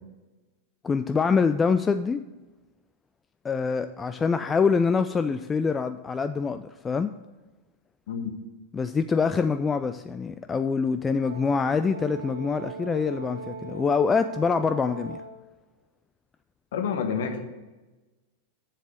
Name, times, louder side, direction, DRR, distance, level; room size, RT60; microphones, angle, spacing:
voice 1, 0.8-2.2 3.4-7.1 8.7-15.2, left 5 dB, 15° left, 10 dB, 0.3 m, -25 dB
Brass instrument, 11.2-15.4, right 4 dB, 85° right, 1.1 m, -39 dB
voice 2, 16.7-17.4, left 6 dB, 55° left, 5 dB, 1.3 m, -28 dB
7.4 x 7.2 x 6.6 m, 1.1 s
figure-of-eight pair, 90°, 0 cm